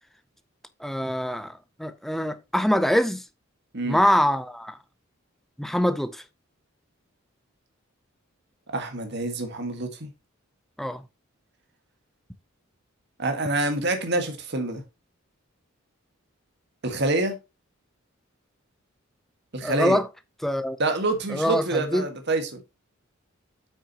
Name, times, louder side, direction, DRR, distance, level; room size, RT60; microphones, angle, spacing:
voice 1, 0.8-3.2 3.8-4.8 5.6-6.2 10.8-11.0 19.6-20.1 20.4-20.8 21.3-22.1, equal, ahead, 0.6 m, -24 dB
voice 2, 8.7-10.1 13.2-14.8 16.8-17.4 19.5-20.0 20.8-22.6, right 2 dB, 55° right, 1.7 m, -26 dB
8.7 x 6.2 x 2.9 m
head